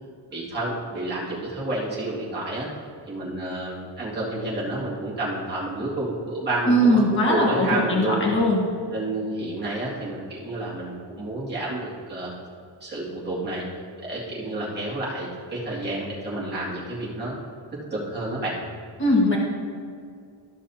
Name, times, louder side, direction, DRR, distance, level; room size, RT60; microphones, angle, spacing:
voice 1, 0.3-2.7 3.1-8.2 8.9-12.3 12.8-13.6 14.0-17.3 17.9-18.6, right 2 dB, 20° right, -7 dB, 2.3 m, -29 dB
voice 2, 6.7-8.6 19.0-19.4, equal, 25° left, -3 dB, 1.5 m, -20 dB
14.0 x 6.1 x 2.8 m, 2.2 s
wide cardioid pair, 165°, 46 cm